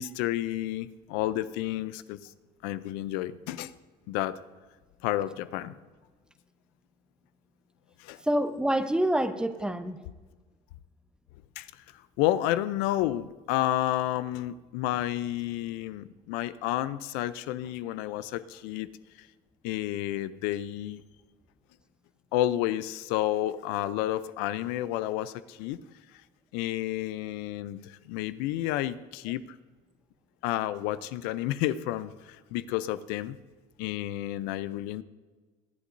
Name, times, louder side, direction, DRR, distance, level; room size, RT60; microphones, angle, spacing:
voice 1, 0.0-2.2 2.6-3.7 4.1-4.4 5.0-5.8 8.0-8.2 11.6-11.7 12.2-18.9 19.6-21.0 22.3-25.8 26.5-29.4 30.4-33.4 33.8-35.0, left 14 dB, 75° left, 15 dB, 0.5 m, -30 dB
voice 2, 8.2-10.0, right 1 dB, 5° right, 10 dB, 0.7 m, -27 dB
22.5 x 8.3 x 2.6 m, 1.3 s
supercardioid pair, 105°, 16 cm